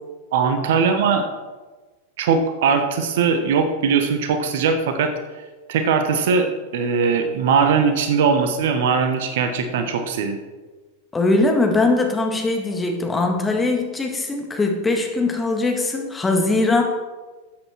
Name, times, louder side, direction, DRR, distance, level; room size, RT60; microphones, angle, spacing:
voice 1, 0.3-1.3 2.2-5.4 5.7-6.5 6.7-10.4, right 5 dB, 55° right, 8 dB, 1.1 m, -20 dB
voice 2, 11.1-16.8, left 2 dB, 10° left, 2 dB, 1.7 m, -21 dB
13.5 x 8.1 x 4.4 m, 1.3 s
figure-of-eight pair, 90°, 0 cm